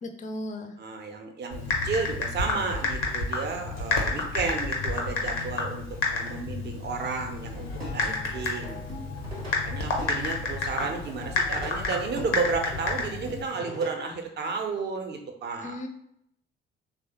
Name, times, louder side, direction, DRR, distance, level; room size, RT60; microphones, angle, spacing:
voice 1, 0.0-0.7 15.6-15.9, left 1 dB, 25° left, 5 dB, 0.4 m, -36 dB
voice 2, 0.8-5.8 6.1-8.8 9.6-15.7, right 4 dB, 35° right, 4 dB, 0.6 m, -32 dB
Typing, 1.5-13.4, left 3 dB, 80° left, 0.6 m, -30 dB
Plucked string instrument, 7.6-14.1, equal, 90° right, 0.8 m, -42 dB
3.2 x 2.0 x 2.9 m, 0.74 s
figure-of-eight pair, 45°, 29 cm